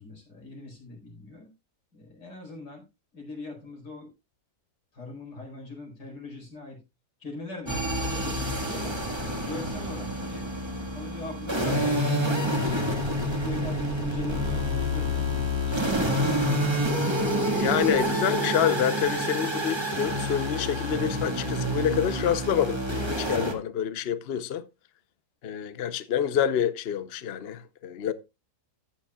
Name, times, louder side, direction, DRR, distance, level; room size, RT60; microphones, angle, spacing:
voice 1, 0.0-1.5 1.9-2.8 3.1-4.1 4.9-6.8 7.2-8.9 9.4-12.8 13.4-16.9, left 2 dB, 90° left, 5.4 m, -41 dB
sound 1, 7.7-23.5, equal, 15° right, 1.7 m, -28 dB
voice 2, 17.5-24.6 25.4-28.1, left 9 dB, 50° left, 0.8 m, -27 dB
14.5 x 10.0 x 2.3 m
omnidirectional pair, 1.8 m